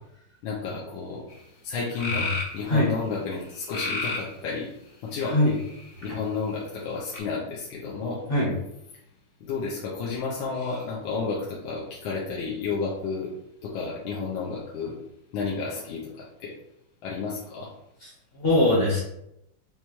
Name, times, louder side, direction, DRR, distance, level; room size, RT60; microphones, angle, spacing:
voice 1, 0.4-1.3 1.6-4.7 5.0-5.4 6.0-8.2 9.4-13.3 13.6-15.0 15.3-16.5 17.0-17.7, left 4 dB, 80° left, -4 dB, 1.4 m, -31 dB
sound 1, 1.3-1.4 2.0-2.6 3.7-4.3 5.2-5.8 7.1-7.2, left 3 dB, 60° left, 1.1 m, -30 dB
voice 2, 18.3-19.0, left 1 dB, 40° left, -5 dB, 1.0 m, -21 dB
5.5 x 2.2 x 3.0 m, 0.81 s
omnidirectional pair, 2.2 m